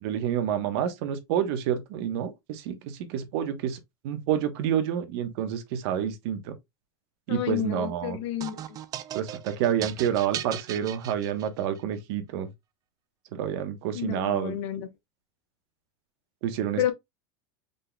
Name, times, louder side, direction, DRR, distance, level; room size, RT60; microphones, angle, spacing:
voice 1, 0.0-3.8 4.0-6.6 7.3-8.2 9.1-12.5 13.3-14.5 16.4-16.9, right 9 dB, 60° right, 1.1 m, -28 dB
voice 2, 7.3-8.8 13.9-14.9 16.8-16.9, left 11 dB, 70° left, 1.0 m, -30 dB
sound 1, 8.4-11.8, right 11 dB, 25° right, 0.3 m, -37 dB
5.2 x 4.0 x 2.2 m
supercardioid pair, 160°, 15 cm